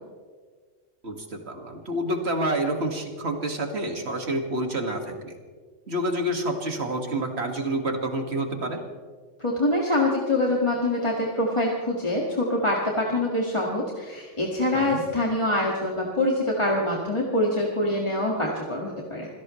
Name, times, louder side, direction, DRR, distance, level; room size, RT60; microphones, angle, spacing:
voice 1, 1.0-5.4 5.9-8.8 14.7-15.0, right 1 dB, 60° right, 3 dB, 2.3 m, -28 dB
voice 2, 9.4-19.3, left 1 dB, 25° left, -3 dB, 2.0 m, -25 dB
26.5 x 17.0 x 3.2 m, 1.5 s
omnidirectional pair, 1.3 m